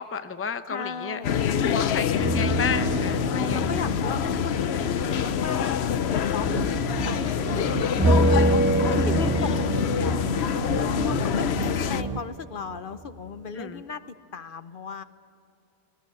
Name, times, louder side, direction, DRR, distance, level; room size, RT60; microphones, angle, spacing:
voice 1, 0.0-1.2 1.7-3.9 6.5-6.8 13.5-13.8, left 6 dB, 15° left, 10 dB, 0.6 m, -32 dB
voice 2, 0.7-1.3 3.2-8.4 8.9-14.0 14.3-15.0, left 6 dB, 60° left, 12 dB, 0.9 m, -37 dB
sound 1, 1.2-12.0, left 8 dB, 85° left, 1.0 m, -26 dB
sound 2, 2.2-6.2 8.0-12.7 13.1-13.2, right 1 dB, 15° right, 0.9 m, -27 dB
sound 3, 6.4-12.2, right 6 dB, 45° right, 0.6 m, -34 dB
20.0 x 19.0 x 8.4 m, 2.5 s
omnidirectional pair, 1.1 m